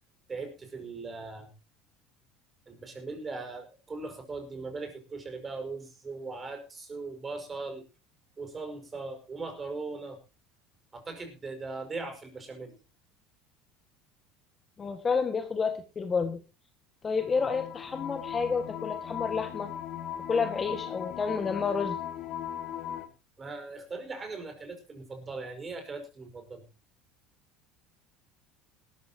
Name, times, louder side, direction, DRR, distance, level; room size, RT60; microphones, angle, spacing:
voice 1, 0.3-1.5 2.7-7.8 8.4-10.2 10.9-12.8 23.4-26.6, right 3 dB, 20° right, 6 dB, 5.7 m, -39 dB
voice 2, 14.8-16.4 17.0-19.7 20.3-22.0, left 5 dB, 25° left, 8 dB, 1.7 m, -30 dB
sound 1, 17.2-23.1, left 10 dB, 50° left, 2.6 m, -38 dB
19.0 x 13.5 x 2.9 m, 0.28 s
supercardioid pair, 125°, 0 cm